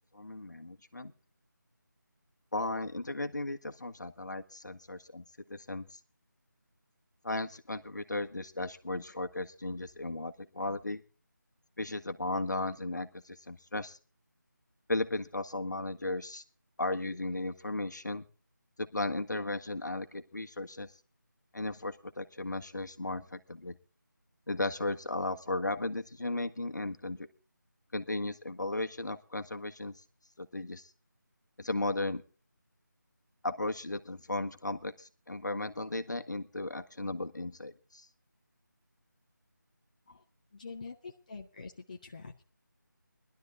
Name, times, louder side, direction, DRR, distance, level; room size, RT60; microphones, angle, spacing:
voice 1, 0.1-1.1 2.5-6.0 7.2-11.0 11.8-14.0 14.9-16.4 16.8-18.2 18.8-20.9 21.5-23.7 24.5-27.3 27.9-30.0 30.4-30.9 31.6-32.2 33.4-38.1, left 2 dB, 65° left, 7 dB, 1.5 m, -35 dB
voice 2, 40.5-42.4, left 4 dB, 25° left, 2 dB, 0.7 m, -45 dB
20.0 x 12.0 x 3.5 m, 0.35 s
figure-of-eight pair, 165°, 11 cm